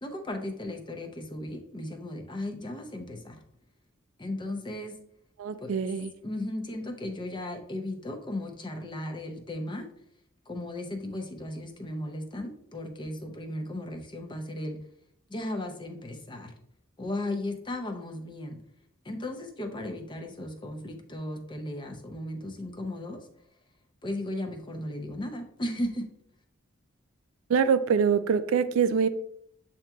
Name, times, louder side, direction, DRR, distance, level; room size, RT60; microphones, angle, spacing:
voice 1, 0.0-3.4 4.2-5.0 5.6-5.7 6.2-9.8 10.5-14.8 15.3-16.5 17.0-18.6 19.0-23.2 24.0-26.0, left 1 dB, 25° left, 4 dB, 0.6 m, -36 dB
voice 2, 5.4-6.1 27.5-29.1, right 6 dB, 85° right, 12 dB, 0.4 m, -24 dB
7.6 x 2.8 x 2.3 m, 0.70 s
head